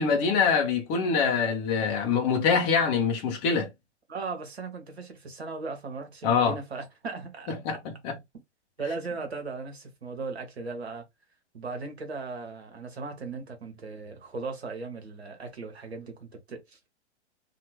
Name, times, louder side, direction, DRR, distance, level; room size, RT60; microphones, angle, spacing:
voice 1, 0.0-3.7 6.2-6.6 7.5-8.2, left 5 dB, 15° left, 0.5 m, -24 dB
voice 2, 4.1-7.5 8.8-11.0 11.5-16.9, right 4 dB, 65° right, 1.2 m, -37 dB
2.8 x 2.3 x 3.1 m
figure-of-eight pair, 110°, 34 cm